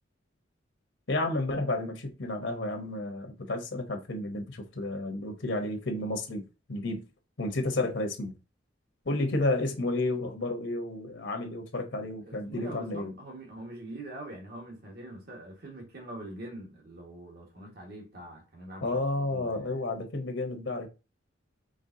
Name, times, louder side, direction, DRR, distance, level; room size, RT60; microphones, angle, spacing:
voice 1, 1.1-6.4 6.7-7.0 7.4-8.3 9.1-13.1 18.8-20.9, left 2 dB, 65° left, 0.9 m, -31 dB
voice 2, 12.0-19.8, right 1 dB, 50° right, 1.5 m, -44 dB
5.2 x 3.4 x 2.7 m
head